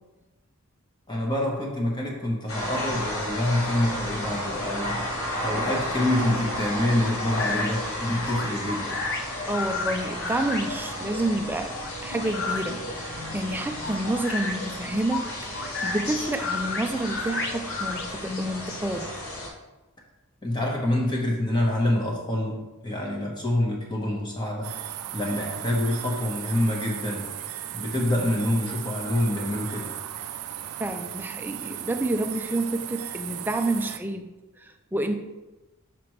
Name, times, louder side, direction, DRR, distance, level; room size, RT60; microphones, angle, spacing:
voice 1, 1.1-5.1 5.4-9.0 20.4-24.7 25.1-27.3 27.7-29.9, left 1 dB, 20° left, -1 dB, 1.1 m, -26 dB
sound 1, 2.5-19.5, equal, 70° left, 1.3 m, -33 dB
sound 2, 7.0-18.5, left 3 dB, 50° left, 0.7 m, -33 dB
voice 2, 9.5-11.7 12.0-19.1 30.8-34.3 34.6-35.1, right 1 dB, 10° right, 6 dB, 0.4 m, -29 dB
sound 3, 24.6-34.0, right 11 dB, 85° right, 0.4 m, -36 dB
5.9 x 5.9 x 3.1 m, 1.1 s
head